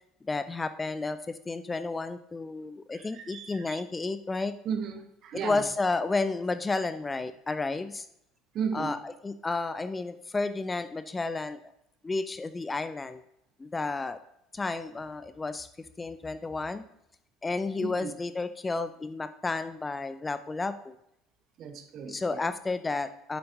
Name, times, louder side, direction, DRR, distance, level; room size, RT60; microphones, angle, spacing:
voice 1, 0.2-4.5 5.4-8.1 8.7-11.6 12.0-13.2 13.6-14.2 14.5-15.7 16.0-16.9 17.4-20.9 22.1-23.4, left 3 dB, 20° left, 12 dB, 0.4 m, -32 dB
voice 2, 2.9-3.8 4.6-5.6 8.5-9.0 17.8-18.1 21.6-22.4, right 6 dB, 45° right, 8 dB, 1.0 m, -35 dB
9.3 x 7.7 x 2.6 m, 0.79 s
figure-of-eight pair, 60°, 0 cm